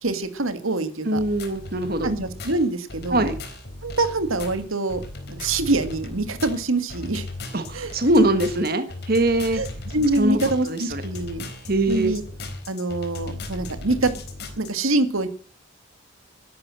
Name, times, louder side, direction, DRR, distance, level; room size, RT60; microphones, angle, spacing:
voice 1, 0.0-1.2 2.0-3.3 3.8-5.0 5.3-7.3 7.7-7.9 9.5-9.7 9.9-11.4 11.9-12.2 12.7-14.1 14.6-15.3, right 2 dB, 90° right, 10 dB, 2.1 m, -25 dB
voice 2, 1.0-2.1 3.1-3.3 7.5-9.6 10.1-11.0 11.7-12.1, right 1 dB, 45° right, 9 dB, 1.6 m, -22 dB
sound 1, 1.1-14.7, left 2 dB, 55° left, 4.0 m, -37 dB
12.5 x 11.5 x 7.6 m, 0.41 s
head